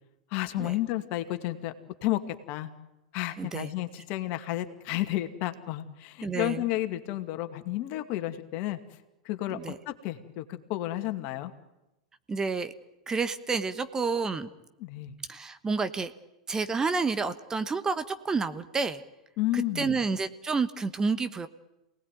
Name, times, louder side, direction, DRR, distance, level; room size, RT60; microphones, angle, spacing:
voice 1, 0.3-1.7 2.0-2.2 2.5-2.7 3.1-9.6 9.9-11.5 14.8-15.2 19.4-20.0, left 15 dB, 50° left, 7 dB, 2.3 m, -32 dB
voice 2, 3.4-3.7 6.2-6.6 9.5-9.8 12.3-12.7 13.1-14.5 15.3-16.1 16.5-19.0 19.5-21.5, right 4 dB, 15° right, 11 dB, 1.2 m, -29 dB
28.0 x 19.0 x 9.2 m, 0.94 s
hypercardioid pair, 100°, 4 cm